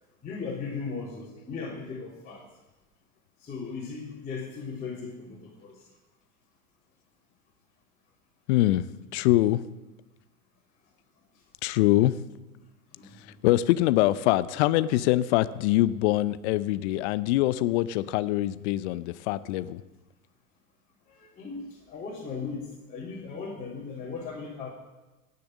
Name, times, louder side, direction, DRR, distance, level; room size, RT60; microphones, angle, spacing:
voice 1, 0.2-2.4 3.4-5.8 12.9-13.4 21.1-24.7, left 4 dB, 20° left, -8 dB, 3.3 m, -37 dB
voice 2, 8.5-8.8 9.1-9.6 11.6-12.1 13.4-19.8, left 15 dB, 50° left, 15 dB, 0.6 m, -24 dB
18.0 x 6.9 x 6.3 m, 1.1 s
hypercardioid pair, 110°, 46 cm